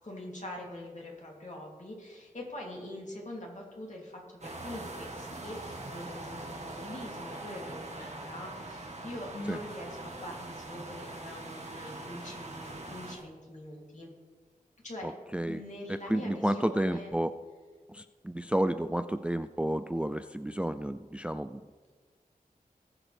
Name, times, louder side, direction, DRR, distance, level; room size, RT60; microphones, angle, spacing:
voice 1, 0.0-7.9 8.2-14.1 14.8-15.1 15.5-17.1, left 1 dB, 55° left, -2 dB, 2.9 m, -43 dB
sound 1, 4.4-13.1, right 2 dB, 50° right, 1.5 m, -43 dB
sound 2, 4.6-13.2, left 1 dB, 90° left, 3.3 m, -55 dB
voice 2, 15.0-15.6 15.9-17.4 17.9-21.6, right 1 dB, 10° right, 11 dB, 0.3 m, -31 dB
19.5 x 7.3 x 3.4 m, 1.4 s
wide cardioid pair, 75°, 15 cm